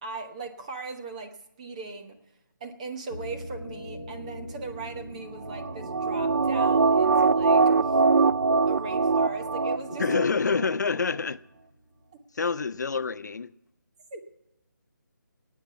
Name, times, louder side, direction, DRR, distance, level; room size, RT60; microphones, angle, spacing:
voice 1, 0.0-2.2 2.6-8.0 8.7-10.2 14.1-14.3, right 3 dB, 20° right, 1.0 m, -39 dB
sound 1, 3.1-11.8, right 1 dB, 55° right, 6.8 m, -42 dB
sound 2, 5.5-10.2 10.6-10.7, right 4 dB, 75° right, 0.4 m, -22 dB
voice 2, 10.0-11.4 12.3-13.5, left 5 dB, 60° left, 0.5 m, -27 dB
23.0 x 9.4 x 5.7 m
hypercardioid pair, 170°, 11 cm